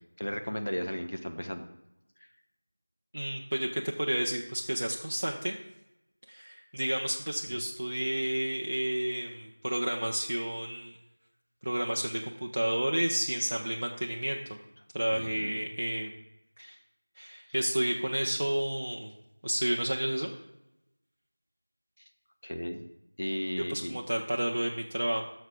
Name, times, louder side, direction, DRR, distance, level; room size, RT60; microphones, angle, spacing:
voice 1, 0.2-1.6 7.5-7.6 15.1-15.6 22.4-22.8 23.2-24.0, equal, 55° left, 5 dB, 1.1 m, -35 dB
voice 2, 3.1-5.6 6.3-11.0 11.6-14.4 14.9-16.1 16.6-16.8 17.2-19.1 19.4-20.3 23.6-25.2, right 1 dB, 25° right, 0 dB, 0.4 m, -31 dB
12.0 x 6.4 x 3.4 m, 0.91 s
figure-of-eight pair, 175°, 0 cm